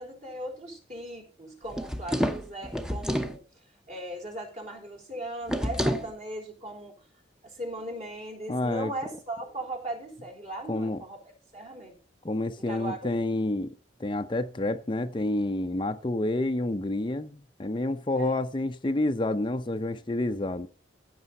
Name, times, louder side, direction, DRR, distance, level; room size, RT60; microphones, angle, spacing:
voice 1, 0.0-3.4 3.9-6.9 7.4-11.2 11.5-11.9 12.6-13.1 18.2-18.4, right 1 dB, 40° right, 4.0 m, -38 dB
sound 1, 1.7-3.4 5.5-6.1, equal, 5° right, 0.8 m, -29 dB
voice 2, 8.5-8.9 10.7-11.0 12.2-13.7 14.0-20.7, left 2 dB, 25° left, 0.6 m, -29 dB
15.5 x 6.7 x 5.4 m
head